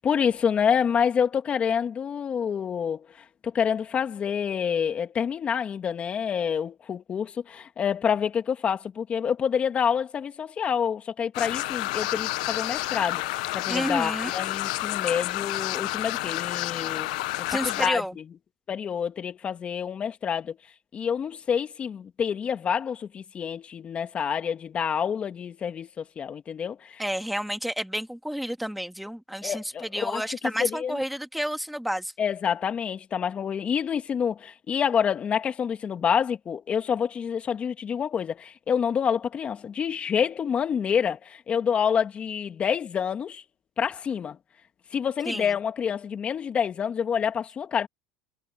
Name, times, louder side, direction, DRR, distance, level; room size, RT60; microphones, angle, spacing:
voice 1, 0.0-3.1 3.4-13.2 13.5-17.2 17.6-18.2 18.7-20.6 20.9-27.0 29.4-30.2 30.6-31.0 32.2-43.4 43.8-44.4 44.9-47.9, left 7 dB, 30° left, 2.8 m, -27 dB
sound 1, 11.3-17.9, left 20 dB, 75° left, 1.0 m, -30 dB
voice 2, 13.7-14.3 17.5-18.2 27.0-32.1 45.3-45.5, equal, ahead, 2.3 m, -30 dB
supercardioid pair, 120°, 4 cm